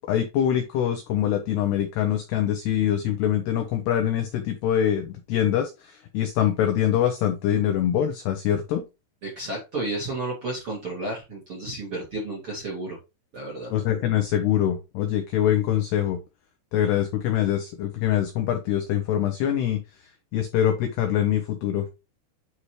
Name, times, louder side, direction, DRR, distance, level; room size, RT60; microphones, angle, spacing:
voice 1, 0.1-8.8 13.7-16.2 16.7-19.8 20.3-21.9, left 10 dB, 80° left, 6 dB, 2.3 m, -24 dB
voice 2, 9.2-13.0 13.3-13.7, right 2 dB, 45° right, -3 dB, 1.9 m, -32 dB
9.5 x 4.2 x 3.1 m, 0.26 s
omnidirectional pair, 5.8 m